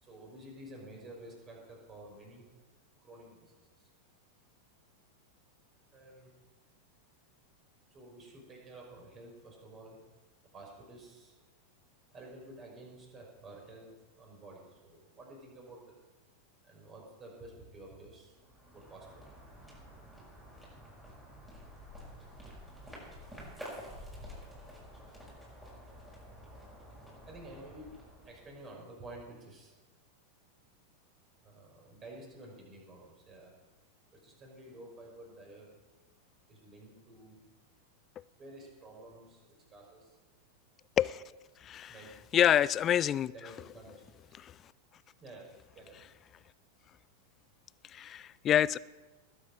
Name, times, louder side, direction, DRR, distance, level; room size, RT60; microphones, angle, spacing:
voice 1, 0.0-2.4 3.0-3.9 5.9-6.3 7.9-10.0 10.5-11.4 12.1-16.0 16.6-18.3 18.7-19.2 27.3-28.0 28.2-29.7 31.4-33.5 34.1-35.7 36.5-37.4 38.4-40.2 41.9-42.1 43.3-44.4 45.2-46.0, right 1 dB, 25° right, 0 dB, 5.3 m, -51 dB
sound 1, 18.2-28.9, equal, 5° right, 5.8 m, -50 dB
voice 2, 41.6-41.9 42.3-43.3 44.3-44.6 47.8-48.8, left 10 dB, 30° left, 21 dB, 0.4 m, -27 dB
20.5 x 8.4 x 5.3 m, 1.2 s
figure-of-eight pair, 90°, 0 cm